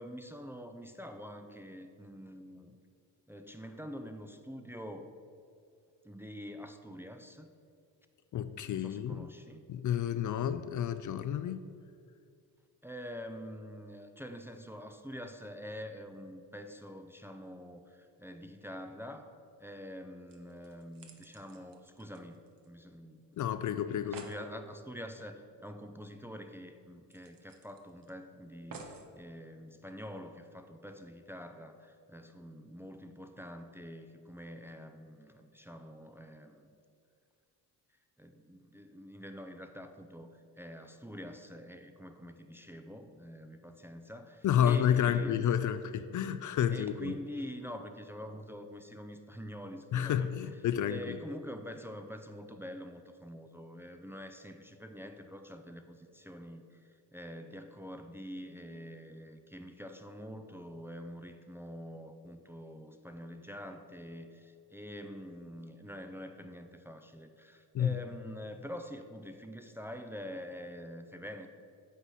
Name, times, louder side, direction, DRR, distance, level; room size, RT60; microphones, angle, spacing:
voice 1, 0.0-2.8 3.3-5.1 6.0-7.5 8.7-9.6 12.8-23.4 23.9-36.7 38.2-45.5 46.7-50.6 50.9-71.5, equal, 5° right, 6 dB, 0.5 m, -46 dB
voice 2, 8.3-9.3 9.7-11.6 23.4-24.3 44.4-47.1 49.9-51.2 67.7-67.9, left 9 dB, 50° left, 11 dB, 0.4 m, -30 dB
sound 1, 20.3-22.9 23.2-23.3 23.6-23.7 23.9-24.4 25.9-26.0 26.4-26.5 27.1-28.1 28.7-29.1 29.8-29.9, right 4 dB, 55° right, 1.0 m, -52 dB
8.3 x 4.0 x 6.0 m, 2.3 s
supercardioid pair, 70°, 41 cm